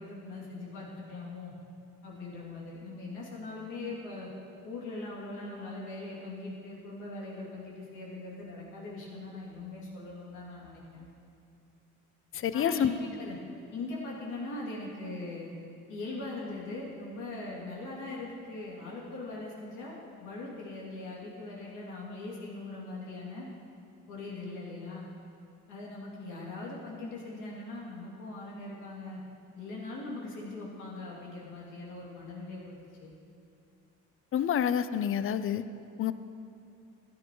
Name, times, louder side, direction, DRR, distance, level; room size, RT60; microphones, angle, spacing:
voice 1, 0.0-1.5 2.0-4.3 4.6-11.0 12.5-13.4 13.7-15.5 15.9-23.5 24.1-25.1 25.7-29.2 29.6-33.1, left 2 dB, 90° left, -5 dB, 2.6 m, -40 dB
voice 2, 12.3-12.9 34.3-35.6 36.0-36.1, left 9 dB, 45° left, 14 dB, 0.5 m, -28 dB
15.0 x 9.9 x 3.1 m, 2.6 s
cardioid pair, 90°, 30 cm